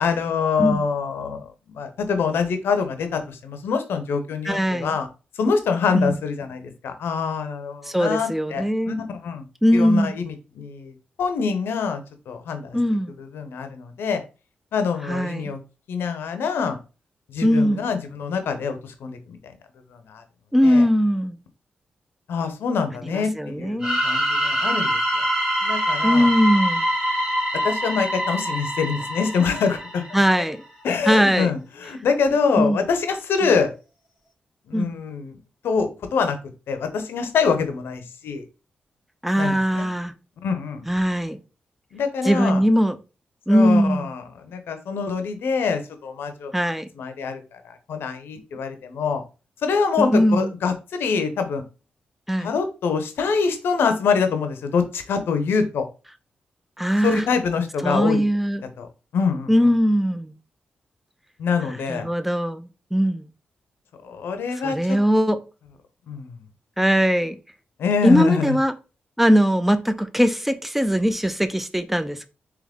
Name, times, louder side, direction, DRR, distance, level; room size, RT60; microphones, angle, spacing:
voice 1, 0.0-5.1 5.4-9.0 9.2-9.4 9.7-12.8 13.2-14.2 14.7-15.6 15.9-16.8 17.3-19.5 19.9-20.2 20.6-20.9 22.3-25.0 25.6-26.3 27.6-30.0 30.8-33.7 34.7-35.4 35.6-36.4 36.7-38.4 39.4-39.9 40.4-40.8 41.9-42.6 43.5-46.5 47.0-49.2 49.6-51.6 52.4-55.9 57.0-58.2 58.8-58.9 59.1-59.7 61.4-62.1 64.0-65.0 66.1-66.4 67.8-68.6, left 5 dB, 80° left, 0.7 m, -25 dB
voice 2, 4.4-5.0 5.9-6.2 7.8-9.0 9.6-10.1 12.7-13.1 15.1-15.5 17.4-17.8 20.5-21.4 23.0-24.0 26.0-26.9 30.1-30.6 31.1-31.5 32.6-32.8 34.7-34.9 39.2-40.1 40.9-41.4 42.2-43.0 43.5-44.1 46.5-46.9 50.0-50.5 52.3-52.5 56.8-57.2 57.8-58.6 59.5-60.3 61.7-63.3 64.6-65.4 66.8-67.4 68.0-68.7 69.2-72.3, equal, 5° right, 0.6 m, -20 dB
sound 1, 23.8-30.5, equal, 20° right, 1.8 m, -24 dB
3.6 x 3.0 x 3.5 m
supercardioid pair, 45°, 4 cm